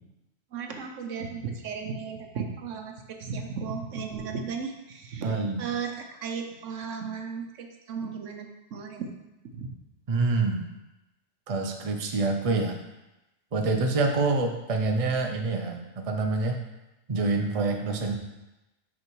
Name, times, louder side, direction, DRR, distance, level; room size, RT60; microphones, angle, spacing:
voice 1, 0.5-5.3 5.6-9.1 9.5-9.7, right 5 dB, 75° right, 4 dB, 1.1 m, -35 dB
voice 2, 5.2-5.7 10.1-10.7 11.5-12.8 13.5-16.6 17.1-18.2, right 3 dB, 35° right, 3 dB, 0.7 m, -26 dB
6.1 x 5.5 x 4.6 m, 1.0 s
omnidirectional pair, 1.3 m